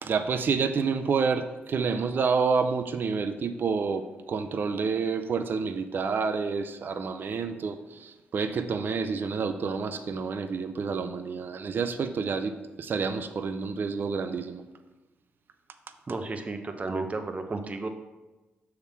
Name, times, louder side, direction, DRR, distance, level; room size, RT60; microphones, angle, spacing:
voice 1, 0.0-7.8 8.0-12.5 12.8-14.6, right 5 dB, 55° right, 9 dB, 0.5 m, -28 dB
voice 2, 16.1-17.9, right 3 dB, 35° right, 6 dB, 0.8 m, -33 dB
6.3 x 3.6 x 5.9 m, 1.1 s
cardioid pair, 65°, 4 cm